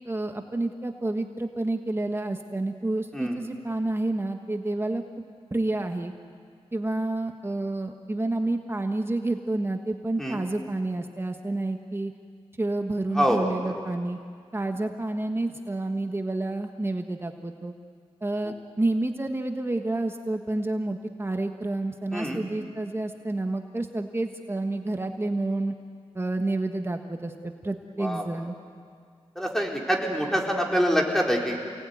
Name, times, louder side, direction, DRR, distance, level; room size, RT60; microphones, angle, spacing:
voice 1, 0.0-5.0 5.5-6.1 6.7-12.1 12.6-14.2 14.5-17.7 18.2-25.7 26.1-28.6, right 2 dB, 20° right, 5 dB, 1.4 m, -29 dB
voice 2, 13.2-13.7 22.1-22.4 28.0-28.2 29.4-31.6, equal, 5° left, 0 dB, 4.2 m, -25 dB
28.5 x 19.0 x 9.5 m, 2.1 s
wide cardioid pair, 85°, 11 cm